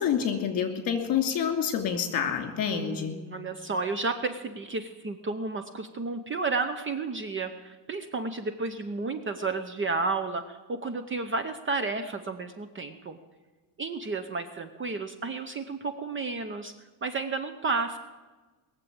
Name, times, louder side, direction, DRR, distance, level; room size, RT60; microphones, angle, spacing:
voice 1, 0.0-3.1, left 8 dB, 45° left, 6 dB, 2.6 m, -28 dB
voice 2, 2.7-13.2 13.8-16.7 17.0-18.0, right 3 dB, 25° right, 9 dB, 0.7 m, -32 dB
20.5 x 7.6 x 8.7 m, 1.3 s
cardioid pair, 140°, 48 cm